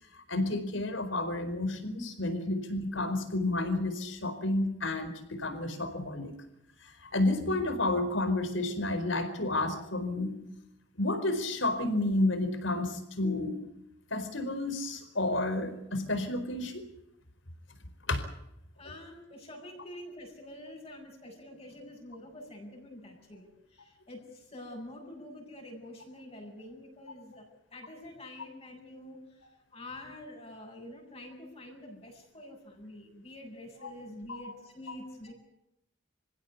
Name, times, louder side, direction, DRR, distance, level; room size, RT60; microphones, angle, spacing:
voice 1, 0.3-6.4 6.8-10.4 11.0-13.6 14.1-16.9 18.1-18.2 34.4-34.5, left 2 dB, 70° left, 9 dB, 4.6 m, -31 dB
voice 2, 18.8-35.3, left 1 dB, 30° left, -1 dB, 7.6 m, -47 dB
27.5 x 16.0 x 8.3 m, 0.82 s
head